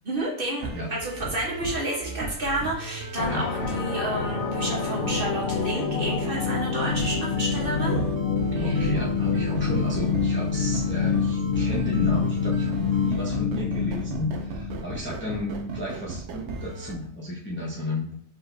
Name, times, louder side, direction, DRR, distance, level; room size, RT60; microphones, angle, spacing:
voice 1, 0.0-8.0 8.5-8.9, right 1 dB, 45° right, -3 dB, 1.2 m, -30 dB
sound 1, 0.6-17.0, right 4 dB, 65° right, 0.8 m, -37 dB
sound 2, 3.2-14.9, left 5 dB, 80° left, 1.1 m, -26 dB
voice 2, 3.3-3.6 8.6-18.1, left 1 dB, 10° left, -4 dB, 0.8 m, -33 dB
4.8 x 3.8 x 2.6 m, 0.69 s
omnidirectional pair, 1.4 m